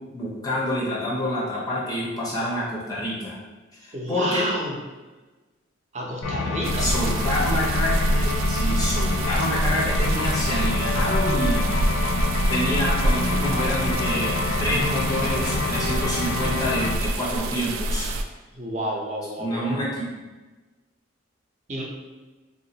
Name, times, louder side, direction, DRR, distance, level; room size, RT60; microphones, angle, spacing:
voice 1, 0.1-3.4 3.8-4.5 6.8-11.7 12.5-18.1 19.4-20.0, equal, 20° left, -6 dB, 0.5 m, -27 dB
voice 2, 3.9-4.8 5.9-6.9 18.5-19.8 21.7-21.8, right 1 dB, 35° right, -2 dB, 0.6 m, -30 dB
sound 1, 6.2-17.0, left 3 dB, 85° left, 0.3 m, -27 dB
sound 2, 6.6-18.2, right 1 dB, 85° right, 0.3 m, -26 dB
3.7 x 2.4 x 2.8 m, 1.2 s
head